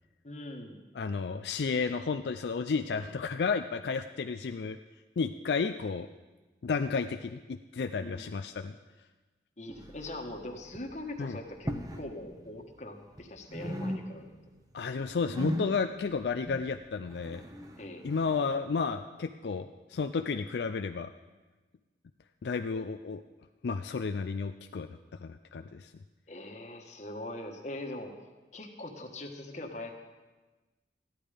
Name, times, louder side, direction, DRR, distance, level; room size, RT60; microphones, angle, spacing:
voice 1, 0.2-0.8 8.0-8.3 9.6-11.7 12.0-14.4 17.8-18.1 26.3-28.1 28.5-29.9, left 1 dB, 40° left, 2 dB, 1.4 m, -42 dB
voice 2, 0.9-4.8 5.2-6.1 6.6-8.7 11.2-11.4 14.7-17.4 18.0-21.1 22.4-23.2 23.6-24.9 25.2-25.9, left 5 dB, 75° left, 7 dB, 0.4 m, -32 dB
sound 1, 9.7-10.4 10.6-11.0 11.5-12.1 12.4-13.2 13.5-14.5 14.8-18.5, equal, 20° right, 0.9 m, -39 dB
14.0 x 11.0 x 5.0 m, 1.2 s
head